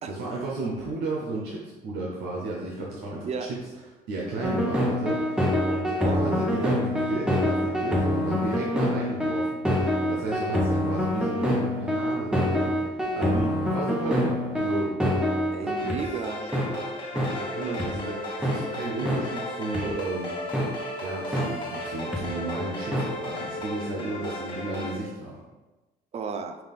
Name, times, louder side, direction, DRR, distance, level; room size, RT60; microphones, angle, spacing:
voice 1, 0.1-3.6 4.1-15.0 15.6-15.9 16.6-25.4, right 2 dB, 90° right, -4 dB, 0.8 m, -34 dB
sound 1, 4.4-16.0 16.5-16.7 17.2-17.3 17.8-17.9 18.4-18.6 19.1-19.2 19.7-19.8 20.5-20.7 21.3-21.5 22.1-22.2 22.9-23.1, equal, 5° right, 0.8 m, -25 dB
voice 2, 6.0-6.8 15.5-16.5 26.1-26.6, right 5 dB, 40° right, 7 dB, 0.5 m, -33 dB
sound 2, 15.8-24.9, left 1 dB, 30° left, 1.3 m, -35 dB
5.7 x 2.5 x 3.5 m, 1.1 s
cardioid pair, 110°, 17 cm